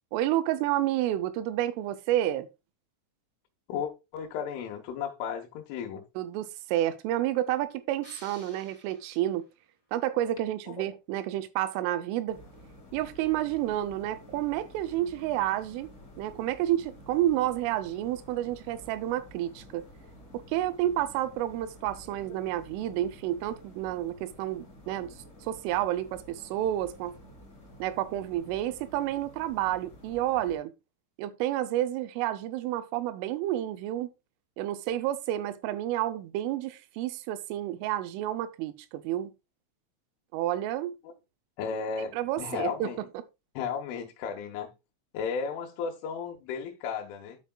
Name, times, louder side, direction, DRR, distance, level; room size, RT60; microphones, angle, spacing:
voice 1, 0.1-2.5 6.2-9.4 9.9-12.4 12.9-19.9 20.3-25.1 25.4-27.2 27.8-30.7 31.2-34.1 34.6-39.3 40.3-41.0 42.1-43.2, right 13 dB, 85° right, 3.0 m, -30 dB
voice 2, 3.7-6.0 10.7-10.9 41.6-43.0 43.6-44.7 45.1-47.4, left 6 dB, 75° left, 3.4 m, -34 dB
sound 1, 8.0-9.6, left 1 dB, 10° right, 1.6 m, -53 dB
sound 2, 12.3-30.6, left 1 dB, 30° left, 1.4 m, -51 dB
13.0 x 4.9 x 2.2 m
omnidirectional pair, 5.8 m